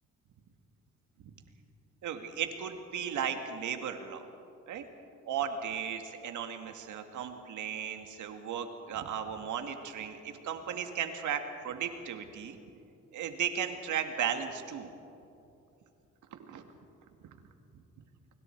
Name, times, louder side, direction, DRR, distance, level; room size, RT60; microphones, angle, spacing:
voice 1, 2.0-4.3 4.7-4.9 5.3-12.6 13.1-14.9 16.3-16.6, right 8 dB, 75° right, 6 dB, 2.1 m, -36 dB
25.5 x 24.0 x 4.6 m, 2.7 s
cardioid pair, 90°, 30 cm